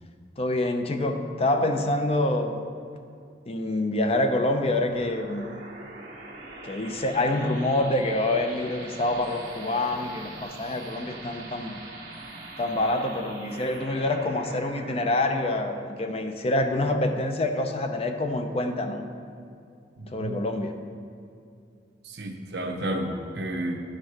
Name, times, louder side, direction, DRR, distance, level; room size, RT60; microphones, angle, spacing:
voice 1, 0.4-2.6 3.5-5.6 6.6-11.8 12.6-19.0 20.1-20.7, left 1 dB, 35° left, 6 dB, 0.5 m, -26 dB
sound 1, 4.4-17.5, right 2 dB, 45° right, 1.5 m, -43 dB
voice 2, 20.0-20.3 22.0-23.8, right 1 dB, 65° right, 3 dB, 0.8 m, -31 dB
11.0 x 4.4 x 4.7 m, 2.4 s
head